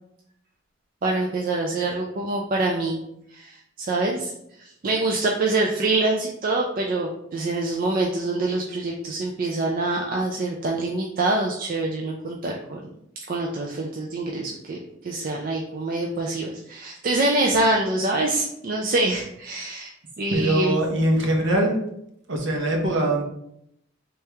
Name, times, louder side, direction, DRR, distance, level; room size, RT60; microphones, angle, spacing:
voice 1, 1.0-3.0 3.3-4.3 4.6-12.8 13.3-19.9 20.2-20.8, right 2 dB, 45° right, 0 dB, 0.4 m, -25 dB
voice 2, 20.3-21.8 22.3-23.2, right 1 dB, 65° right, 1 dB, 0.9 m, -22 dB
3.3 x 3.0 x 3.4 m, 0.76 s
head